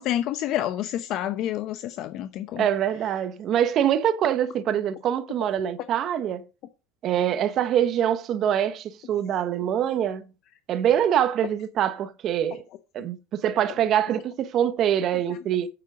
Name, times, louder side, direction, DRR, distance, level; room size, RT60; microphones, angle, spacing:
voice 1, 0.0-2.7, left 12 dB, 50° left, 0.8 m, -28 dB
voice 2, 2.6-6.4 7.0-10.2 10.7-12.6 12.9-15.7, right 10 dB, 40° right, 1.2 m, -24 dB
8.3 x 7.4 x 5.0 m
supercardioid pair, 125°, 0 cm